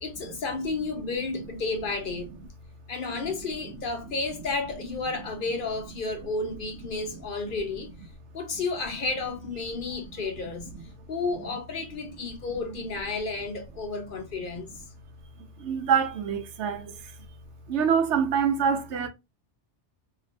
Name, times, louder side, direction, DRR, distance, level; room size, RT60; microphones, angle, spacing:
voice 1, 0.0-2.3 2.9-7.9 8.3-10.7 11.1-14.7, left 3 dB, 55° left, 0.8 m, -32 dB
voice 2, 15.6-17.2 17.7-19.1, right 7 dB, 80° right, 1.0 m, -26 dB
3.1 x 2.8 x 2.5 m
omnidirectional pair, 1.2 m